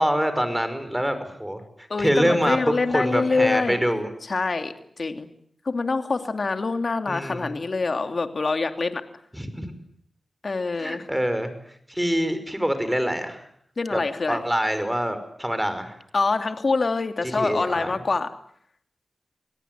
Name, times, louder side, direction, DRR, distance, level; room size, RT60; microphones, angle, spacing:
voice 1, 0.0-1.6 2.0-4.1 7.1-7.5 9.3-9.7 10.8-11.5 11.9-13.4 13.9-14.0 14.3-16.0 17.4-18.0, equal, 5° right, 10 dB, 5.6 m, -25 dB
voice 2, 1.9-3.8 4.3-5.3 5.6-9.0 10.4-11.1 13.8-14.4 16.1-18.3, left 3 dB, 55° left, 8 dB, 2.7 m, -25 dB
26.5 x 18.5 x 9.4 m, 0.67 s
cardioid pair, 55°, 0 cm